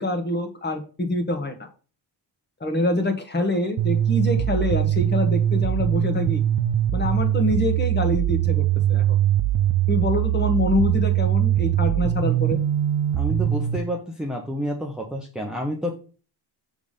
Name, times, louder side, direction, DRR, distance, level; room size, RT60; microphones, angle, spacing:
voice 1, 0.0-1.7 2.6-6.4 6.9-8.6 8.9-9.0 9.9-12.6, left 1 dB, 25° left, 5 dB, 1.4 m, -25 dB
sound 1, 3.8-13.8, right 11 dB, 80° right, 0.7 m, -22 dB
voice 2, 13.1-16.0, equal, ahead, 0 dB, 0.8 m, -29 dB
7.1 x 3.6 x 5.3 m, 0.36 s
wide cardioid pair, 160°, 43 cm